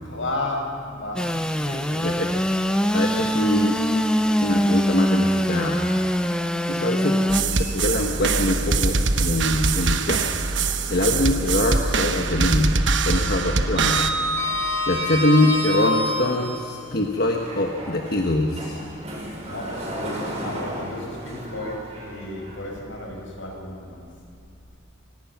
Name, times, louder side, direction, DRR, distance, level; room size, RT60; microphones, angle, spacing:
voice 1, 0.0-2.2 19.5-24.1, left 1 dB, 85° left, 0 dB, 5.9 m, -33 dB
Engine / Sawing, 1.2-7.4, equal, 5° left, 0.7 m, -22 dB
voice 2, 2.9-3.8 4.4-6.0 6.7-10.4 10.9-12.7 13.0-14.1 14.9-18.8, left 1 dB, 55° left, 1 dB, 1.3 m, -24 dB
sound 1, 7.3-14.1, right 4 dB, 70° right, 1.1 m, -23 dB
Sliding door, 7.5-8.4 8.8-8.9 10.6-11.7 11.9-12.3 12.6-16.7 17.3-22.5, left 1 dB, 35° right, 6.5 m, -30 dB
25.5 x 18.0 x 6.0 m, 2.5 s
head